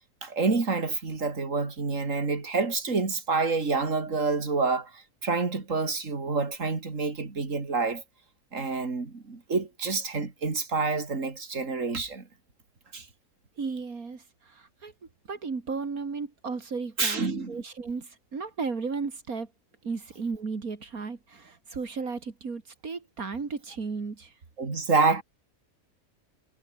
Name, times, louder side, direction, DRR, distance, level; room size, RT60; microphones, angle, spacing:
voice 1, 0.2-8.0 8.5-12.3 12.9-13.1 17.0-17.6 24.6-25.2, right 4 dB, 60° right, 3.4 m, -28 dB
voice 2, 13.6-14.9 15.3-19.5 19.8-24.4, right 4 dB, 80° right, 3.0 m, -35 dB
omnidirectional pair, 1.5 m